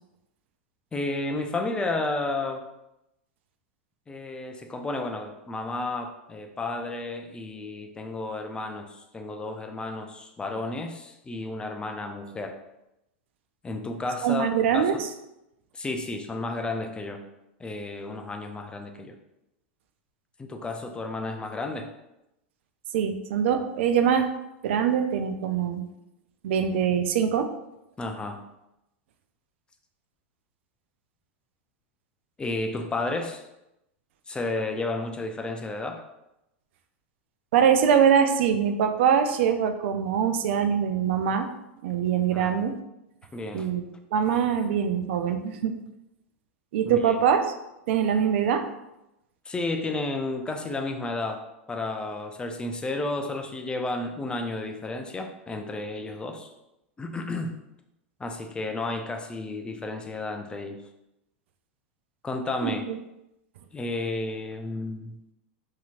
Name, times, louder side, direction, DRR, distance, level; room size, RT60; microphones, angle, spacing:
voice 1, 0.9-2.6 4.1-12.6 13.6-14.9 15.7-17.2 17.6-19.1 20.4-21.9 28.0-28.4 32.4-33.4 34.3-36.0 42.3-42.5 43.3-43.7 46.9-47.1 49.5-56.5 57.0-57.5 58.2-60.8 62.2-62.8 63.7-65.2, left 2 dB, 15° left, 5 dB, 0.3 m, -32 dB
voice 2, 14.2-15.1 22.9-24.3 24.6-25.9 26.4-27.5 37.5-41.5 41.8-42.8 43.5-45.8 46.7-47.4 47.9-48.7 62.6-62.9, right 8 dB, 70° right, 7 dB, 0.3 m, -23 dB
2.9 x 2.7 x 2.4 m, 0.89 s
hypercardioid pair, 110°, 7 cm